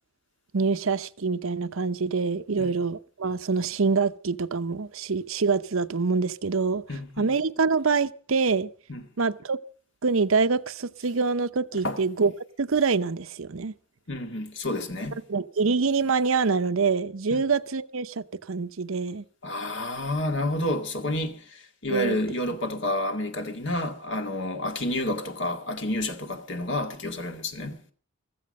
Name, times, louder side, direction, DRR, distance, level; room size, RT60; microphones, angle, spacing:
voice 1, 0.5-6.8 7.2-8.7 9.2-9.6 10.0-12.3 12.6-13.7 15.3-19.2 21.9-22.2, right 4 dB, 70° right, 0.7 m, -25 dB
voice 2, 6.9-7.3 8.9-9.1 11.7-12.1 14.1-15.2 17.3-17.4 19.4-27.8, left 1 dB, 55° left, 2.1 m, -30 dB
15.5 x 14.5 x 5.3 m
head